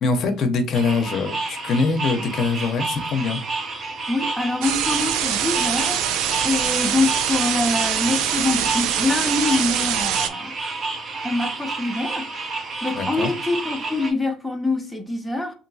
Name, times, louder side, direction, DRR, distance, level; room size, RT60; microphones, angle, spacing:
voice 1, 0.0-3.4 12.9-13.3, left 4 dB, 55° left, 0.6 m, -23 dB
sound 1, 0.7-14.1, right 3 dB, 35° right, 0.7 m, -30 dB
voice 2, 4.1-6.1 6.4-10.5 11.2-12.3 12.8-15.5, left 2 dB, ahead, 0.5 m, -25 dB
sound 2, 4.6-10.3, right 10 dB, 75° right, 0.4 m, -24 dB
2.9 x 2.6 x 2.6 m
cardioid pair, 110°, 0 cm